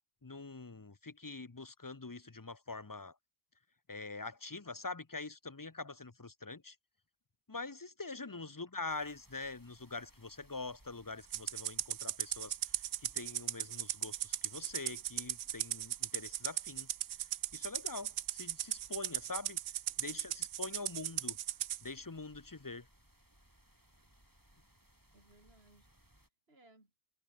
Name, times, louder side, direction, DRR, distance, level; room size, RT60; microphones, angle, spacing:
voice 1, 0.2-3.1 3.9-6.8 7.5-16.9 17.5-19.6 20.0-21.4 21.8-22.9, left 3 dB, 20° left, 0.6 m, -44 dB
voice 2, 8.3-8.6 20.0-20.5 25.1-27.0, right 2 dB, 50° right, 5.1 m, -66 dB
sound 1, 8.9-26.3, right 1 dB, 15° right, 4.7 m, -66 dB
Rattle (instrument), 11.3-21.8, right 13 dB, 90° right, 1.1 m, -37 dB
omnidirectional pair, 1.3 m